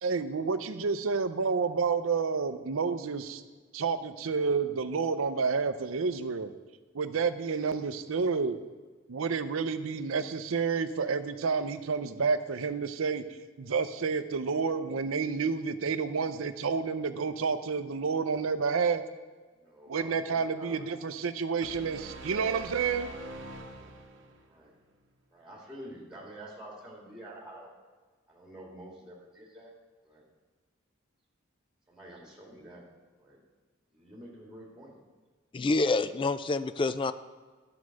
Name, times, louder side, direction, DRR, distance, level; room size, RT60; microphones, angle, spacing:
voice 1, 0.0-3.4 3.7-6.5 6.9-8.6 9.1-19.0 19.9-23.1, right 5 dB, 90° right, 11 dB, 0.6 m, -30 dB
voice 2, 19.5-20.9 23.6-24.0 24.5-24.8 25.3-27.7 28.3-29.7 30.0-30.3 31.9-32.9 33.2-33.4 33.9-35.0, right 1 dB, 5° right, -3 dB, 1.8 m, -48 dB
sound 1, 21.6-24.5, right 2 dB, 65° right, 0.9 m, -44 dB
voice 3, 35.5-37.1, left 3 dB, 25° left, 13 dB, 0.3 m, -27 dB
11.5 x 4.8 x 6.3 m, 1.4 s
head